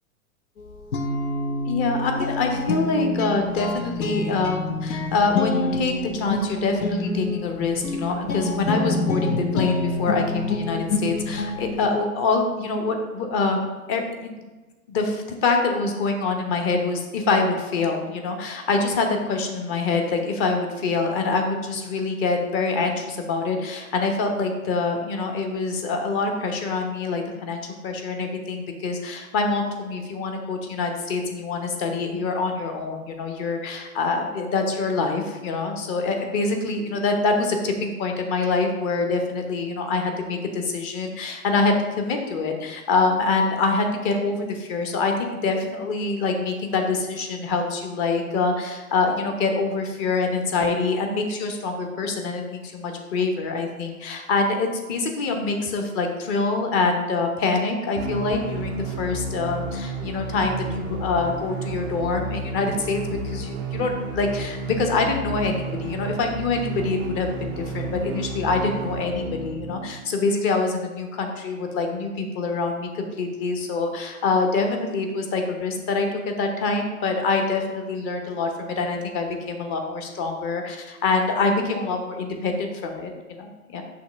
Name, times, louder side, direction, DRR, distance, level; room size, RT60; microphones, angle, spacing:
Guitar, 0.6-11.8, left 2 dB, 75° left, 0.9 m, -27 dB
voice 1, 1.7-14.4 14.9-83.5 83.7-83.8, left 3 dB, 30° left, 3 dB, 1.0 m, -25 dB
sound 1, 58.0-69.9, right 3 dB, 15° right, 0.3 m, -32 dB
5.6 x 3.4 x 5.6 m, 1.2 s
hypercardioid pair, 115°, 43 cm